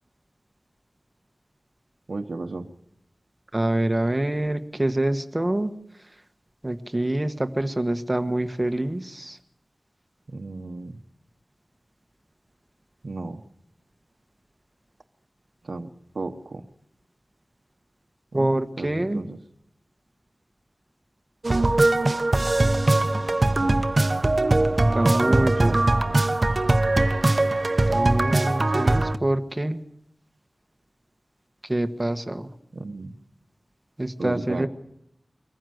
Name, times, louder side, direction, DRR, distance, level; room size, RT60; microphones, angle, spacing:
voice 1, 2.1-2.7 10.3-11.0 13.0-13.4 15.6-15.9 16.1-16.6 18.3-19.4 23.6-23.9 25.3-25.8 32.7-33.1 34.2-34.7, right 3 dB, 75° right, 3 dB, 1.1 m, -34 dB
voice 2, 3.5-5.7 6.6-9.4 18.3-19.2 24.9-25.8 27.9-29.8 31.6-32.5 34.0-34.7, right 1 dB, 25° right, 9 dB, 1.3 m, -25 dB
sound 1, 21.4-29.2, right 2 dB, 45° right, 1.0 m, -21 dB
23.5 x 15.0 x 7.9 m, 0.77 s
wide cardioid pair, 60°, 0 cm